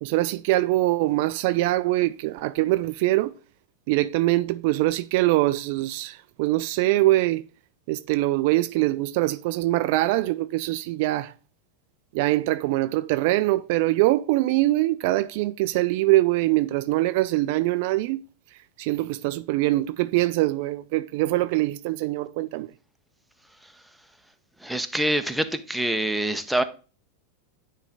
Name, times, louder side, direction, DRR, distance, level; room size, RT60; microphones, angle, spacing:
voice 1, 0.0-3.3 3.9-7.4 7.9-11.3 12.1-18.2 18.8-22.7, right 17 dB, 55° right, 0.3 m, -23 dB
voice 2, 24.6-26.6, right 1 dB, ahead, 0.7 m, -25 dB
9.6 x 3.3 x 3.9 m
figure-of-eight pair, 90°, 0 cm